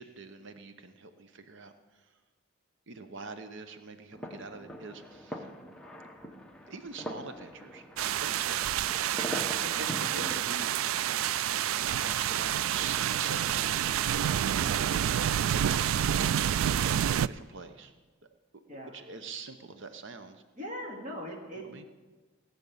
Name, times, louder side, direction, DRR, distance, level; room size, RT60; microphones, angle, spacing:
voice 1, 0.0-2.0 2.9-5.5 6.7-8.7 9.8-10.8 11.7-17.9 18.9-20.4 21.7-21.9, right 4 dB, 65° right, 9 dB, 0.9 m, -44 dB
Distant Fireworks, 4.1-10.4, equal, 5° left, 1.0 m, -42 dB
sound 1, 8.0-17.3, right 10 dB, 85° right, 0.3 m, -28 dB
voice 2, 20.6-21.6, equal, 40° right, 0 dB, 2.2 m, -40 dB
17.5 x 6.8 x 8.6 m, 1.3 s
head